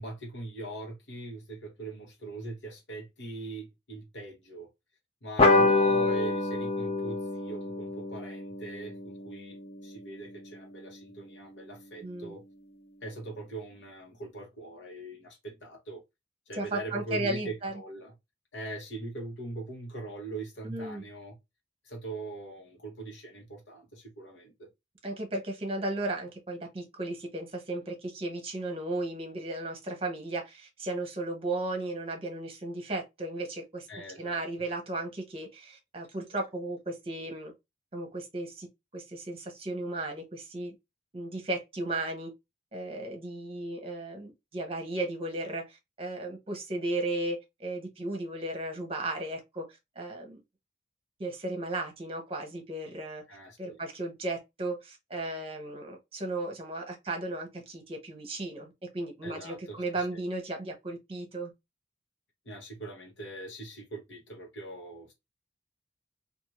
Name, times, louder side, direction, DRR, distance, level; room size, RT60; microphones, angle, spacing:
voice 1, 0.0-4.7 5.2-12.4 13.0-16.0 16.5-18.1 18.5-21.4 21.8-24.7 33.9-34.4 53.3-53.8 59.2-60.1 62.4-65.1, right 2 dB, 75° left, 1.1 m, -41 dB
sound 1, 5.4-10.3, left 3 dB, 30° left, 0.5 m, -27 dB
voice 2, 12.0-12.4 16.5-17.7 20.6-21.0 25.0-33.9 34.2-37.5 37.9-38.7 38.9-40.7 41.1-42.3 42.7-50.4 51.2-53.2 53.6-61.5, right 2 dB, 30° right, 0.9 m, -35 dB
2.6 x 2.5 x 3.0 m
head